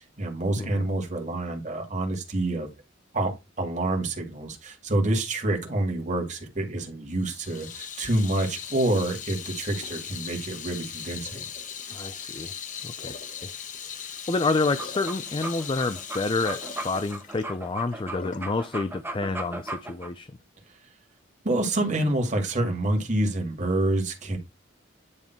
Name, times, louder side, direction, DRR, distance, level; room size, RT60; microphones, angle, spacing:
voice 1, 0.0-2.7 3.1-11.5 21.4-24.4, right 1 dB, 40° right, 2.1 m, -27 dB
Water tap faucet / Sink (filling or washing), 7.2-18.5, left 7 dB, 40° left, 1.0 m, -39 dB
voice 2, 11.9-12.5 12.8-13.2 13.4-13.6 14.3-20.4, left 3 dB, 25° left, 0.4 m, -29 dB
sound 1, 14.6-20.1, right 1 dB, 10° right, 1.1 m, -37 dB
9.8 x 3.5 x 4.5 m
head